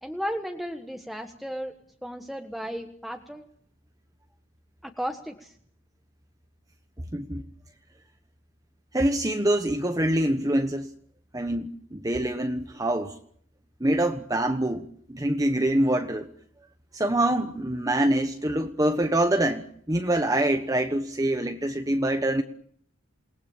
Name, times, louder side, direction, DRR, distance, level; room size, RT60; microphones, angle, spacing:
voice 1, 0.0-1.7 2.0-3.5 4.8-5.5, equal, ahead, 3 dB, 1.4 m, -34 dB
voice 2, 7.1-7.4 8.9-10.9 11.3-13.2 13.8-16.3 16.9-22.4, right 1 dB, 15° right, 6 dB, 1.2 m, -25 dB
28.5 x 20.0 x 7.2 m, 0.62 s
head